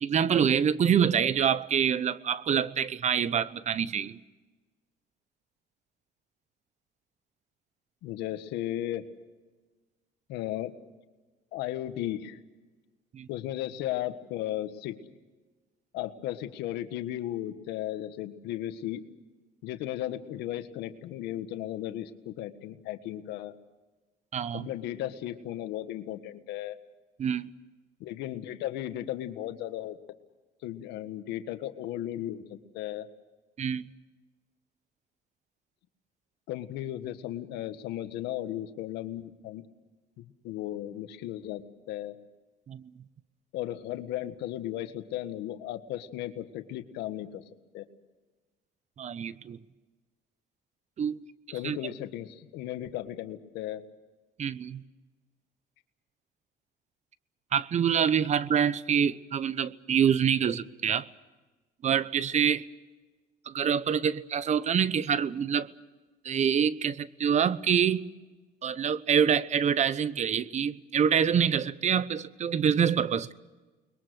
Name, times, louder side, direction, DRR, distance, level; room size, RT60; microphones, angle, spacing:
voice 1, 0.0-4.2 13.1-13.3 24.3-24.7 27.2-27.5 33.6-33.9 42.7-42.8 49.0-49.6 51.0-51.2 51.6-51.9 54.4-54.8 57.5-61.1 61.8-62.7 63.5-65.7 66.2-68.1 68.6-73.3, right 8 dB, 45° right, 0.9 m, -26 dB
voice 2, 8.0-9.0 10.3-10.7 11.5-12.4 13.3-15.0 15.9-19.0 19.6-23.5 24.5-26.8 28.0-30.0 30.6-33.1 36.5-39.6 40.2-42.1 43.5-47.4 47.7-47.8 51.5-53.8, left 13 dB, 90° left, 1.6 m, -35 dB
29.5 x 22.0 x 6.4 m
cardioid pair, 110°, 17 cm